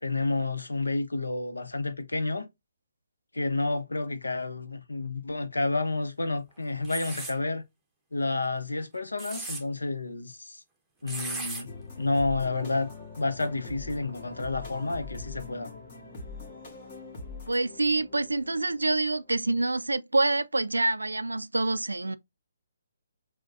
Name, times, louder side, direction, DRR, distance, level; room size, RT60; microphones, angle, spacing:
voice 1, 0.0-2.4 3.3-7.6 8.1-10.6 11.0-11.7 12.0-12.9 13.2-15.7, left 2 dB, 80° left, 0.7 m, -30 dB
sound 1, 6.8-7.4 9.0-9.6 11.1-11.6, right 3 dB, 5° right, 0.8 m, -36 dB
sound 2, 11.7-19.4, left 3 dB, 40° left, 1.6 m, -43 dB
voice 2, 17.5-22.2, right 2 dB, 85° right, 0.3 m, -26 dB
6.1 x 2.2 x 2.3 m
figure-of-eight pair, 135°, 0 cm